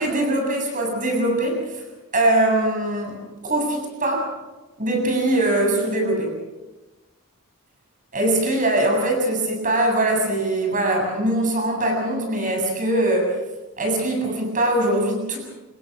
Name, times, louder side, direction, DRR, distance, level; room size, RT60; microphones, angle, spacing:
voice 1, 0.0-1.8 2.1-3.2 3.5-4.3 4.8-6.3 8.1-13.3 13.8-15.4, right 1 dB, 35° right, 2 dB, 7.8 m, -22 dB
27.0 x 21.0 x 6.3 m, 1.1 s
head